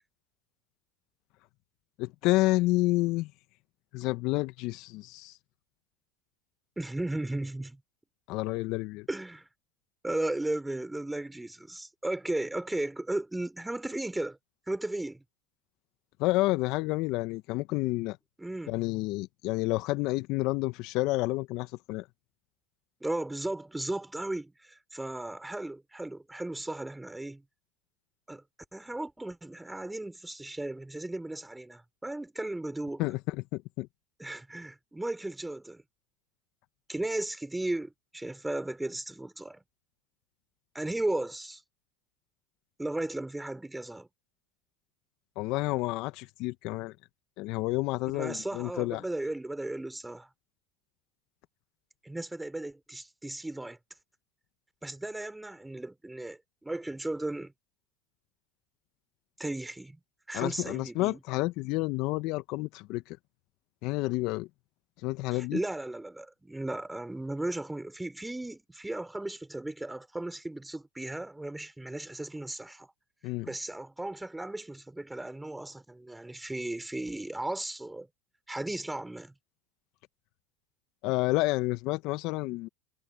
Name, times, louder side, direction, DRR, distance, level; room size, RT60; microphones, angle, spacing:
voice 1, 2.0-3.3 3.9-5.4 8.3-9.1 16.2-18.2 18.7-22.1 33.0-33.9 45.4-46.9 47.4-49.0 60.3-63.2 63.8-64.5 65.0-65.6 73.2-73.5 81.0-82.7, left 20 dB, 60° left, 1.3 m, -29 dB
voice 2, 6.8-7.8 9.1-9.5 10.0-14.4 14.7-15.2 18.4-18.8 23.0-27.4 28.3-28.4 28.7-33.0 34.2-35.8 36.9-39.6 40.7-41.6 42.8-44.1 48.1-50.3 52.0-53.8 54.8-57.5 59.4-60.0 60.3-61.2 65.3-72.9 73.4-78.1 78.5-79.3, right 2 dB, 10° right, 3.9 m, -35 dB
hypercardioid pair, 85°, 0 cm